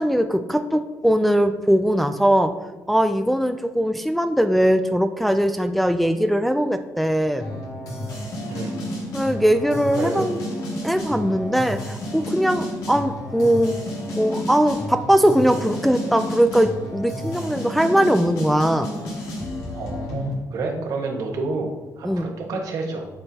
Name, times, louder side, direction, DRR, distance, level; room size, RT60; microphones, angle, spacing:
voice 1, 0.0-2.5 2.9-7.4 9.1-10.4 10.8-13.8 14.2-18.9 22.0-22.3, equal, ahead, 8 dB, 0.3 m, -20 dB
sound 1, 7.4-20.3, left 1 dB, 80° left, 2.2 m, -31 dB
voice 2, 19.7-23.1, right 3 dB, 75° right, 1 dB, 1.3 m, -29 dB
9.7 x 4.4 x 2.8 m, 1.2 s
cardioid pair, 105°, 6 cm